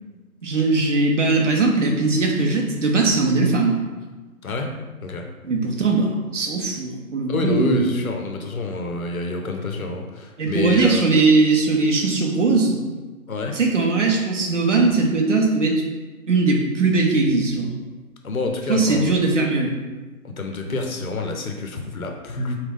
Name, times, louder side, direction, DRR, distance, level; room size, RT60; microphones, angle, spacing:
voice 1, 0.4-3.8 5.4-7.9 10.4-12.8 13.5-15.8 16.3-17.7 18.7-19.7, right 3 dB, 55° right, 1 dB, 0.8 m, -20 dB
voice 2, 4.4-4.7 5.0-5.3 7.3-11.0 13.3-13.6 18.2-19.2 20.2-22.6, left 3 dB, 70° left, 3 dB, 0.7 m, -27 dB
3.6 x 2.3 x 3.7 m, 1.2 s
figure-of-eight pair, 145°, 44 cm